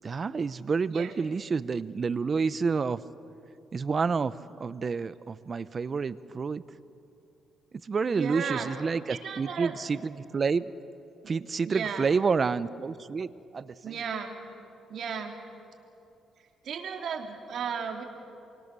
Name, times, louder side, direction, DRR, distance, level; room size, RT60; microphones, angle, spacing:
voice 1, 0.0-3.0 3.7-4.3 4.6-6.6 7.8-10.7 11.3-13.9, right 5 dB, 40° right, 16 dB, 0.8 m, -29 dB
voice 2, 8.1-8.7 9.1-9.8 11.6-12.1 13.8-14.3 14.9-15.3 16.6-18.0, right 6 dB, 65° right, 3 dB, 3.2 m, -34 dB
28.0 x 24.5 x 6.9 m, 2.7 s
cardioid pair, 90°, 0 cm